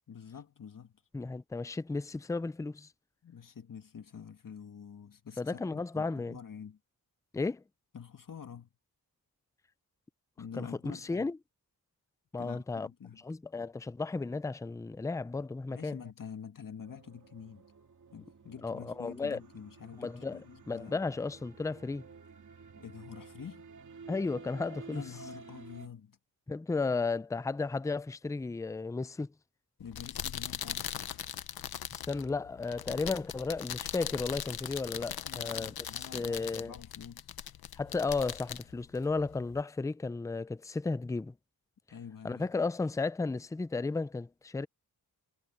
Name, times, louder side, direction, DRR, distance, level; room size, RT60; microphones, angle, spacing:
voice 1, 0.1-1.0 3.2-6.8 7.9-8.7 10.4-11.3 12.4-13.2 15.7-17.7 18.1-21.1 22.8-23.7 24.9-26.2 29.8-31.3 35.1-37.3 41.9-42.5, left 7 dB, 60° left, 2.0 m, -47 dB
voice 2, 1.1-2.9 5.4-6.4 7.3-7.6 10.5-11.4 12.3-12.9 13.2-16.0 18.6-19.4 20.0-20.4 20.7-22.1 24.1-25.0 26.5-29.3 31.9-36.7 37.8-41.3 42.2-44.7, left 3 dB, 10° left, 0.4 m, -34 dB
sound 1, 16.8-25.9, right 5 dB, 55° right, 2.2 m, -52 dB
sound 2, 29.8-39.6, left 10 dB, 75° left, 0.8 m, -40 dB
wide cardioid pair, 110°, 37 cm